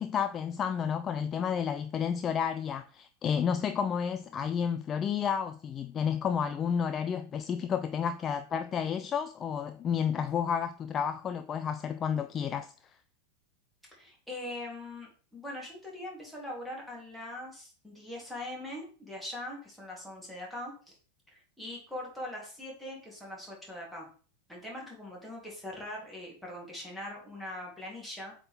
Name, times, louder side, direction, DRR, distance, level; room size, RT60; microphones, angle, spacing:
voice 1, 0.0-12.7, left 7 dB, 25° left, 0.3 m, -31 dB
voice 2, 13.9-20.9 21.3-24.1 24.5-28.3, left 1 dB, ahead, 2.5 m, -42 dB
7.7 x 3.8 x 3.4 m
figure-of-eight pair, 90°, 0 cm